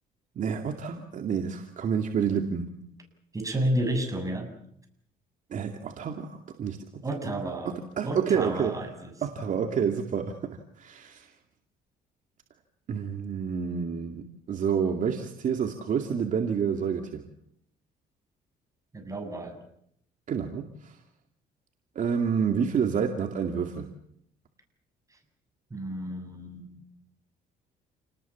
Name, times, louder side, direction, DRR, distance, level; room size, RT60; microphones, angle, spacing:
voice 1, 0.4-2.7 5.5-6.8 7.2-7.3 7.6-8.7 9.2-11.3 12.9-17.2 20.3-21.0 22.0-23.9, right 7 dB, 50° right, 4 dB, 2.4 m, -29 dB
voice 2, 3.3-4.5 7.0-7.8 8.0-9.4 18.9-19.6 25.7-26.8, right 1 dB, 20° right, 5 dB, 7.4 m, -31 dB
29.5 x 19.5 x 7.3 m, 0.70 s
cardioid pair, 110°, 17 cm